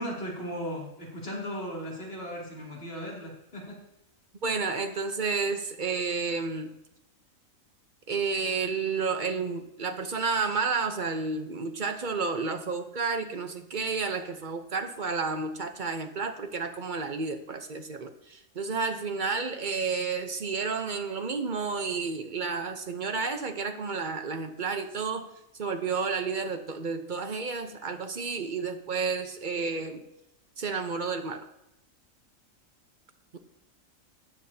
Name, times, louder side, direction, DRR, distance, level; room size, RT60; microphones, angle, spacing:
voice 1, 0.0-3.8, equal, 45° left, -4 dB, 3.0 m, -36 dB
voice 2, 4.4-6.7 8.1-25.3 25.6-30.0 30.6-31.5 33.3-33.4, right 4 dB, 40° right, 6 dB, 1.0 m, -31 dB
15.0 x 9.8 x 2.8 m, 0.87 s
omnidirectional pair, 1.4 m